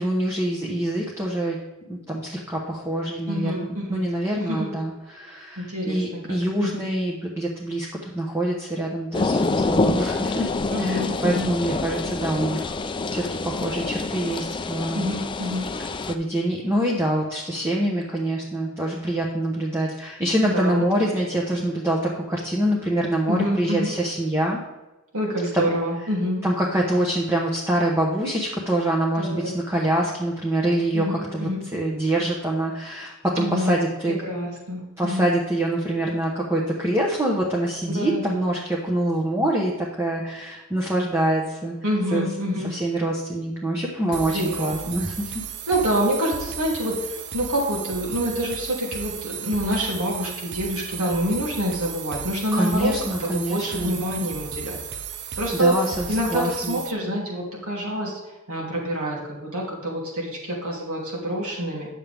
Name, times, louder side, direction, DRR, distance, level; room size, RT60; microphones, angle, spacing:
voice 1, 0.0-1.6 1.9-10.5 10.8-12.8 13.1-15.0 16.1-24.6 25.5-25.7 26.4-34.2 35.0-41.7 42.1-42.3 42.6-45.3 52.5-54.0 55.5-56.8, right 1 dB, 10° right, -2 dB, 1.0 m, -25 dB
voice 2, 3.3-4.1 4.4-4.7 5.6-6.2 6.6-6.9 10.7-11.5 14.9-15.7 20.4-21.4 23.3-23.9 25.1-26.4 29.1-29.5 30.9-31.7 33.4-33.8 34.0-35.3 37.9-38.4 41.8-42.7 44.1-45.0 45.7-52.9 53.2-54.8 55.4-55.8 56.1-61.9, equal, 75° right, -2 dB, 2.8 m, -27 dB
sound 1, 9.1-16.1, left 3 dB, 20° left, 0.4 m, -26 dB
sound 2, 44.1-56.9, right 8 dB, 50° right, 0.6 m, -35 dB
9.5 x 7.3 x 3.5 m, 1.0 s
head